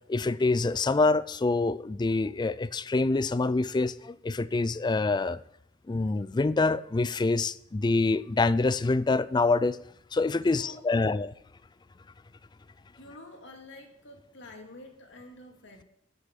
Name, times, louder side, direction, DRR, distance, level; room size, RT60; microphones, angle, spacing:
voice 1, 0.1-5.4 5.9-9.8 10.1-11.3, left 3 dB, 20° left, 0.4 m, -26 dB
voice 2, 10.6-11.1 12.9-15.8, left 2 dB, 70° left, 2.4 m, -48 dB
12.0 x 6.9 x 7.4 m
head